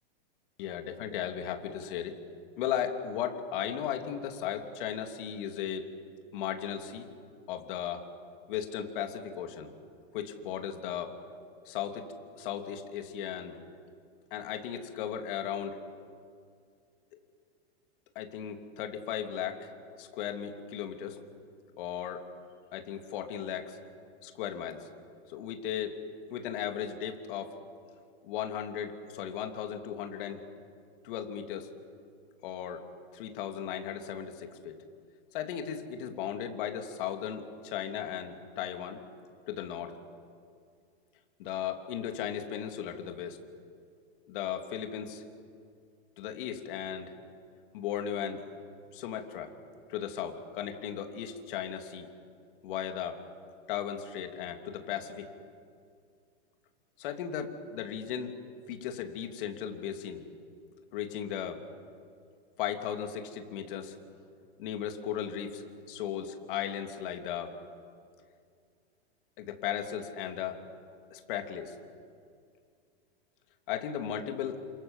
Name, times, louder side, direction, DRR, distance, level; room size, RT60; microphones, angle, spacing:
voice 1, 0.6-2.1 2.6-5.9 6.3-7.1 7.5-8.1 8.5-9.7 10.1-11.2 11.6-12.1 12.4-13.6 14.3-15.8 18.1-19.7 20.0-21.2 21.8-22.3 22.7-23.8 24.2-24.9 25.3-27.5 28.2-30.4 31.0-31.7 32.4-32.9 33.1-34.8 35.3-39.0 39.5-40.0 41.4-43.4 44.3-45.2 46.2-47.1 47.7-48.4 48.9-49.5 49.9-52.1 52.6-53.2 53.7-55.3 57.0-58.3 58.7-60.2 60.9-61.6 62.6-64.0 64.6-67.6 69.4-70.6 71.1-71.7 73.7-74.6, left 9 dB, 50° left, 5 dB, 3.0 m, -36 dB
29.0 x 27.0 x 7.4 m, 2.3 s
supercardioid pair, 160°, 33 cm